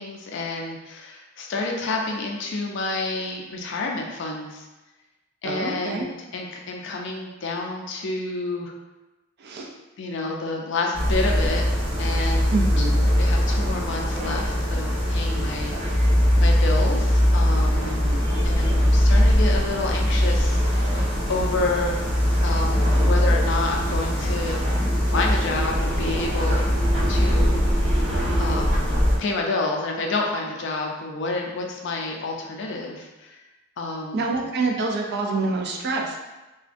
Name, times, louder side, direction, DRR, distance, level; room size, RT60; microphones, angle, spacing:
voice 1, 0.0-4.7 5.4-8.7 10.0-11.6 12.0-12.7 13.1-18.0 18.4-22.1 22.4-24.6 25.1-26.7 27.1-27.6 28.4-28.9 29.2-33.4 33.8-34.3, left 3 dB, 65° left, 0 dB, 0.4 m, -29 dB
voice 2, 5.4-6.1 9.4-9.7 12.5-13.0 17.8-18.2 34.1-36.2, right 3 dB, 55° right, 0 dB, 0.4 m, -26 dB
sound 1, 10.9-29.2, equal, 40° right, 1.3 m, -21 dB
2.5 x 2.1 x 2.4 m, 1.1 s
head